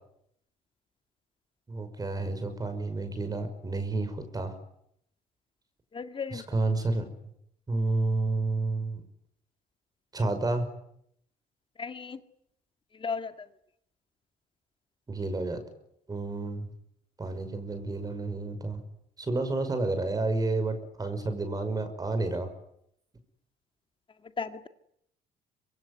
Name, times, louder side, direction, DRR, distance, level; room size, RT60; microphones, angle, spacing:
voice 1, 1.7-4.5 6.3-7.1 7.7-9.0 10.1-10.7 15.1-15.6 16.1-16.7 17.2-18.8 19.2-22.5, right 2 dB, 20° right, 8 dB, 5.6 m, -30 dB
voice 2, 5.9-6.4 11.8-12.2 13.0-13.3 24.4-24.7, left 5 dB, 30° left, 9 dB, 2.0 m, -34 dB
25.0 x 23.5 x 9.8 m, 0.75 s
cardioid pair, 110°, 17 cm